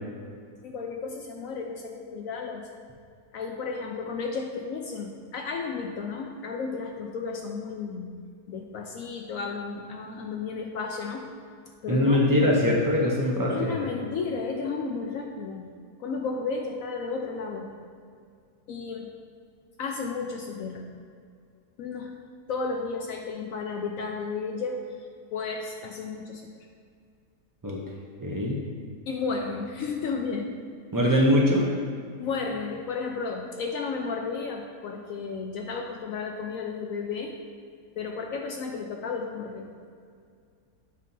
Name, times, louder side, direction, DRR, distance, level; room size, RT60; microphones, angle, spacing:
voice 1, 0.6-2.7 3.3-8.2 8.5-11.2 11.8-12.2 13.5-15.7 16.0-17.7 18.7-19.1 19.8-20.9 21.8-22.1 22.5-24.9 25.3-26.5 29.1-30.7 31.0-31.2 32.2-37.3 38.0-39.7, left 4 dB, 70° left, 2 dB, 0.8 m, -33 dB
voice 2, 11.9-13.8 27.6-27.8 28.2-28.6 30.9-31.7, left 1 dB, 35° right, -4 dB, 0.3 m, -22 dB
8.2 x 2.8 x 5.3 m, 2.2 s
omnidirectional pair, 1.8 m